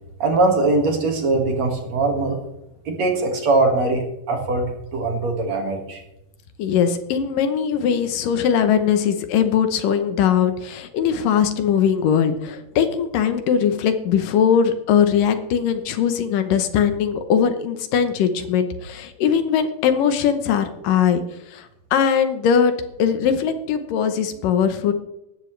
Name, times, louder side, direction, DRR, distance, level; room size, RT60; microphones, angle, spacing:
voice 1, 0.2-2.4 2.9-6.0, right 3 dB, 55° right, 3 dB, 3.0 m, -21 dB
voice 2, 6.6-21.2 21.5-22.7 23.0-24.9, left 8 dB, 75° left, 9 dB, 2.6 m, -20 dB
17.0 x 13.0 x 3.3 m, 0.87 s
omnidirectional pair, 4.0 m